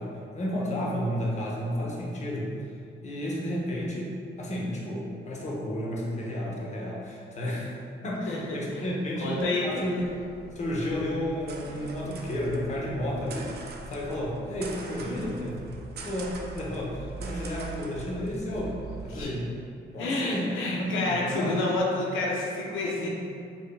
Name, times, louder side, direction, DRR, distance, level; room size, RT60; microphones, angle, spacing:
voice 1, 0.0-2.5 3.0-7.8 8.0-10.0 10.6-13.6 13.9-15.7 16.0-19.5 19.9-21.8 22.9-23.1, left 1 dB, 35° left, -3 dB, 0.8 m, -32 dB
voice 2, 8.3-8.9 9.2-9.8 19.1-19.3 20.0-23.1, left 2 dB, 85° left, -3 dB, 0.6 m, -29 dB
sound 1, 10.0-19.2, right 3 dB, 55° right, 0.4 m, -42 dB
4.7 x 2.6 x 2.2 m, 2.4 s
cardioid pair, 90°, 20 cm